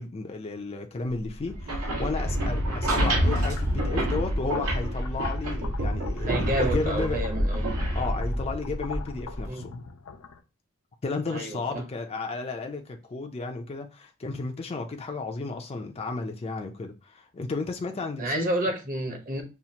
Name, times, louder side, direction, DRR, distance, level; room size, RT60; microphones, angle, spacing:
voice 1, 0.0-7.3 7.9-9.7 11.0-18.5, left 3 dB, 30° left, 0.4 m, -33 dB
sound 1, 1.4-9.5, equal, 80° right, 1.7 m, -27 dB
sound 2, 3.2-10.4, left 5 dB, 85° left, 0.6 m, -43 dB
voice 2, 6.2-7.6 9.4-9.7 11.3-11.8 18.2-19.4, right 1 dB, 40° right, 1.0 m, -30 dB
5.6 x 2.4 x 2.8 m
head